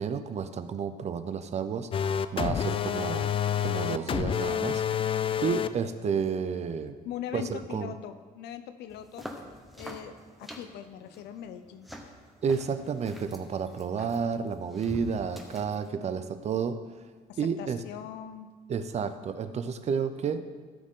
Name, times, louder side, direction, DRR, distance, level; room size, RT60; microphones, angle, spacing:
voice 1, 0.0-1.9 2.3-4.8 5.4-7.0 7.3-7.9 12.4-16.8 17.4-17.8 18.7-20.4, right 6 dB, 40° right, 10 dB, 0.7 m, -31 dB
sound 1, 1.9-5.7, left 9 dB, 30° left, 0.4 m, -28 dB
voice 2, 2.4-2.9 7.0-9.3 9.7-11.9 17.3-18.5, left 10 dB, 80° left, 11 dB, 0.7 m, -41 dB
sound 2, 8.9-15.9, equal, ahead, 1.0 m, -45 dB
13.5 x 6.5 x 3.8 m, 1.5 s
cardioid pair, 110°, 17 cm